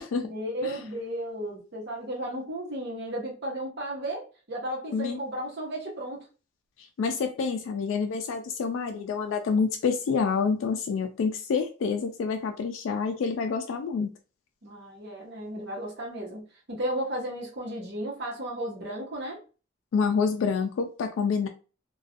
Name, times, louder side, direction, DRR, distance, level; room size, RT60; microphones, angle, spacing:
voice 1, 0.3-6.3 14.6-19.4, right 1 dB, 60° right, -2 dB, 0.9 m, -34 dB
voice 2, 6.8-14.1 19.9-21.5, left 5 dB, 75° left, 5 dB, 0.3 m, -28 dB
2.5 x 2.3 x 2.4 m, 0.34 s
head